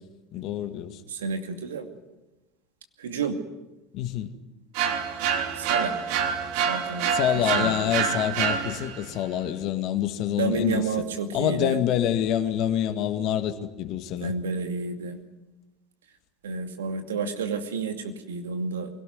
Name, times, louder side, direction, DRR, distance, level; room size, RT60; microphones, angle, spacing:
voice 1, 0.3-1.0 3.9-4.3 7.1-10.9 11.3-14.3, left 10 dB, 55° left, 9 dB, 2.0 m, -26 dB
voice 2, 1.1-1.9 3.0-3.4 5.5-6.0 6.7-7.9 10.4-11.8 14.2-15.2 16.4-18.9, right 4 dB, 80° right, 7 dB, 2.5 m, -30 dB
sound 1, 4.7-9.1, right 7 dB, 65° right, 2.7 m, -27 dB
24.0 x 17.5 x 9.5 m, 1.0 s
hypercardioid pair, 75°, 0 cm